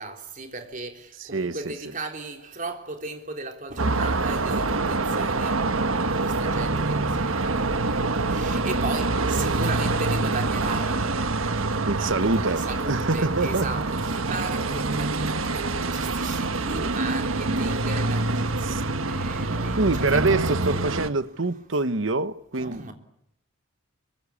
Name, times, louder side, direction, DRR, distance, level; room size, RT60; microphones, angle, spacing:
voice 1, 0.0-21.1 21.4-21.8 22.6-22.9, right 3 dB, 40° right, 3.7 m, -37 dB
voice 2, 1.3-1.7 11.8-13.7 16.7-16.9 18.6-18.8 19.8-22.9, right 3 dB, 65° right, 1.1 m, -25 dB
sound 1, 3.8-21.1, right 3 dB, 85° right, 1.5 m, -26 dB
25.5 x 23.5 x 8.6 m
head